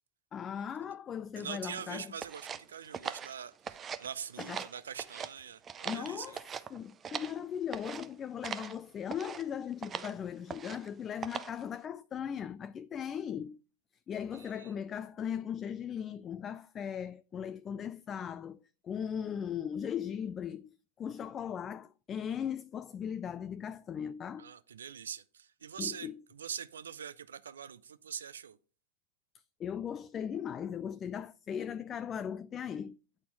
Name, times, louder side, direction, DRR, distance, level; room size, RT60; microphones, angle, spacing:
voice 1, 0.3-2.1 4.4-4.7 5.8-6.4 6.7-13.6 14.1-24.5 25.8-26.2 29.6-33.0, left 8 dB, 30° left, 0.3 m, -38 dB
voice 2, 1.4-6.4 14.3-14.7 24.4-28.6, right 7 dB, 80° right, 0.5 m, -43 dB
sound 1, 2.2-4.1 4.3-5.3 5.6-7.4 7.7-8.1 8.4-8.7 9.1-9.4 9.8-10.1 10.5-10.9 11.2-11.6, right 7 dB, 25° right, 0.5 m, -41 dB
8.8 x 4.2 x 4.6 m
hypercardioid pair, 95°, 0 cm